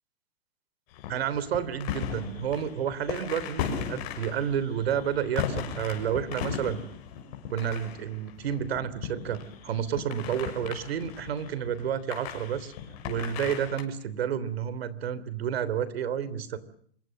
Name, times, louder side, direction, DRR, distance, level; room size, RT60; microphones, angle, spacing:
sound 1, 0.9-13.8, left 8 dB, 40° left, 6.9 m, -37 dB
voice 1, 1.1-6.8 7.5-12.7 13.0-16.6, right 8 dB, 75° right, 16 dB, 3.2 m, -30 dB
26.5 x 23.5 x 7.6 m, 0.62 s
supercardioid pair, 170°, 31 cm